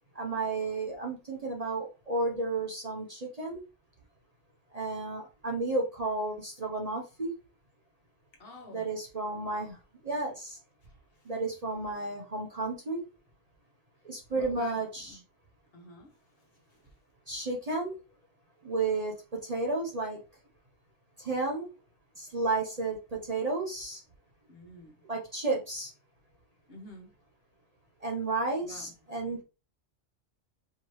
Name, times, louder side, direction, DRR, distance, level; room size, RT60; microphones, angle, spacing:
voice 1, 0.1-3.6 4.7-7.3 8.7-9.8 10.0-10.6 11.2-13.0 14.0-15.2 17.3-18.0 18.6-20.2 21.2-21.7 22.2-24.0 25.0-25.9 28.0-29.4, right 3 dB, 35° right, 0.8 m, -32 dB
voice 2, 8.3-8.9 10.8-10.9 14.3-15.2 15.7-16.1 24.5-25.0 26.7-27.1 28.6-28.9, left 1 dB, 55° left, 1.3 m, -48 dB
4.6 x 2.9 x 3.1 m
omnidirectional pair, 1.2 m